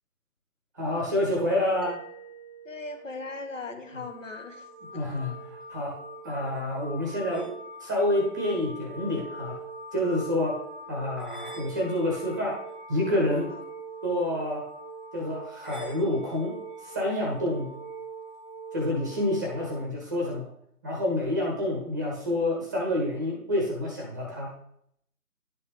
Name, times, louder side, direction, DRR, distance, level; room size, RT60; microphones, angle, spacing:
voice 1, 0.7-2.0 4.9-5.9 6.2-7.5 7.8-9.6 9.9-10.6 10.9-12.6 12.9-13.5 14.0-14.6 15.1-16.5 16.8-17.7 18.7-20.5 20.8-24.5, left 1 dB, 10° right, -2 dB, 1.0 m, -28 dB
Mallet percussion, 1.8-6.4, right 4 dB, 35° left, 0.8 m, -52 dB
voice 2, 2.6-4.7 4.9-5.1 13.5-13.6, left 3 dB, 55° left, 6 dB, 1.2 m, -39 dB
sound 1, 3.9-19.9, right 2 dB, 35° right, 0.8 m, -42 dB
11.0 x 4.2 x 3.4 m, 0.69 s
figure-of-eight pair, 155°, 46 cm